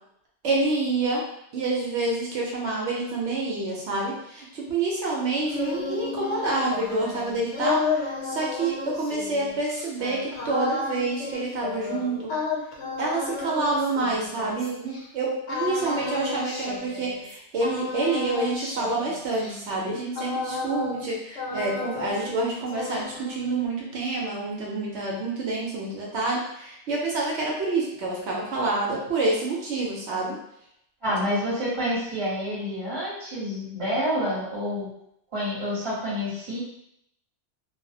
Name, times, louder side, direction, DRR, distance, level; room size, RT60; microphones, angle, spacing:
voice 1, 0.4-1.2 1.5-12.3 13.0-30.4 31.1-31.2, right 2 dB, 80° right, -3 dB, 0.9 m, -28 dB
sound 1, 5.2-15.0 15.5-17.3 17.6-21.1 21.3-22.4 22.7-23.6, left 4 dB, 85° left, 0.9 m, -32 dB
voice 2, 31.0-34.9 35.3-36.6, equal, 30° right, -8 dB, 1.0 m, -28 dB
2.3 x 2.0 x 2.6 m, 0.75 s
omnidirectional pair, 1.2 m